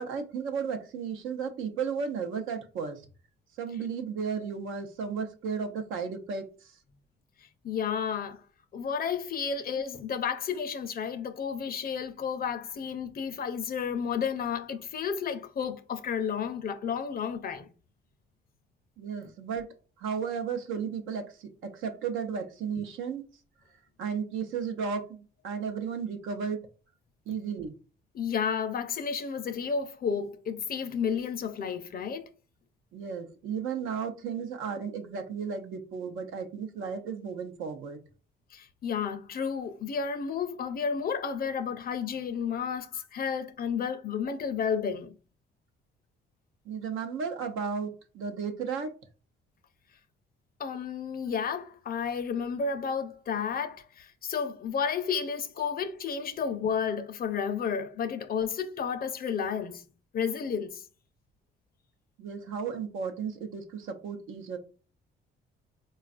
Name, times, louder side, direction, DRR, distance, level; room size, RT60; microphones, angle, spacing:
voice 1, 0.0-3.1 3.6-6.8 19.0-23.3 24.0-26.6 27.3-27.7 32.9-38.0 46.6-48.9 62.2-64.6, right 6 dB, 90° right, 0.7 m, -34 dB
voice 2, 7.4-8.4 8.7-17.7 27.3-27.4 28.1-32.3 38.5-45.2 50.6-59.8 60.1-60.8, left 6 dB, 50° left, 0.5 m, -32 dB
4.2 x 2.3 x 2.4 m
cardioid pair, 90°, 20 cm